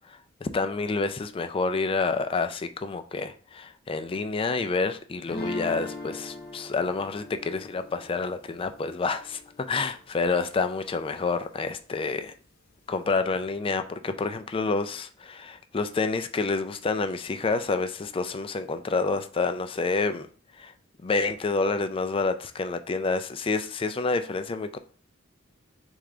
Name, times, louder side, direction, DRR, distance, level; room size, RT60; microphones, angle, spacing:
voice 1, 0.1-9.4 9.7-12.3 12.9-20.3 20.6-20.7 21.0-24.8, left 4 dB, 25° left, 0.4 m, -28 dB
sound 1, 5.3-10.2, left 1 dB, 50° left, 0.9 m, -41 dB
3.5 x 3.3 x 3.8 m
head